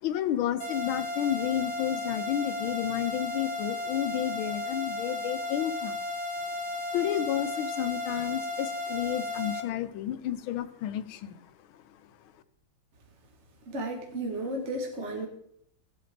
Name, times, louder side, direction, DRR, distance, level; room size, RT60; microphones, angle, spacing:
voice 1, 0.0-6.1 6.9-11.4 11.7-11.8, left 11 dB, 75° left, 11 dB, 1.5 m, -31 dB
sound 1, 0.6-9.6, left 2 dB, 80° right, 2.1 m, -34 dB
voice 2, 13.7-15.3, right 1 dB, 40° right, 2 dB, 1.3 m, -33 dB
17.0 x 8.4 x 3.4 m, 0.72 s
omnidirectional pair, 2.4 m